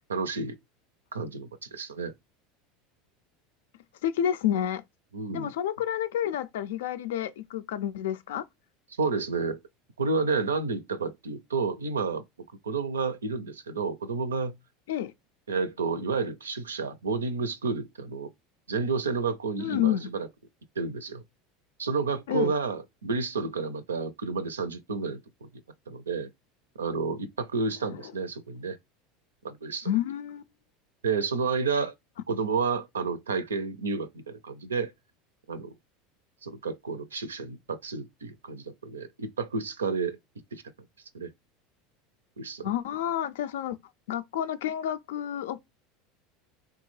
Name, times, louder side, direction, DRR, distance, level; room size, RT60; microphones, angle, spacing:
voice 1, 0.1-0.6 1.1-2.1 5.1-5.5 9.0-9.6 10.0-12.2 12.6-14.5 15.5-18.3 18.7-20.3 20.8-21.2 21.8-25.5 25.9-26.3 26.8-28.8 29.4-29.9 31.0-31.9 32.3-34.9 35.5-35.7 36.4-40.2 40.5-40.6 41.1-41.3 42.4-42.7, right 4 dB, 90° right, 0.5 m, -30 dB
voice 2, 4.0-4.8 5.3-8.4 14.9-15.1 19.6-20.1 22.3-22.5 29.9-30.4 42.6-43.8 44.1-45.6, left 10 dB, 75° left, 0.4 m, -29 dB
3.5 x 2.2 x 3.2 m
hypercardioid pair, 80°, 0 cm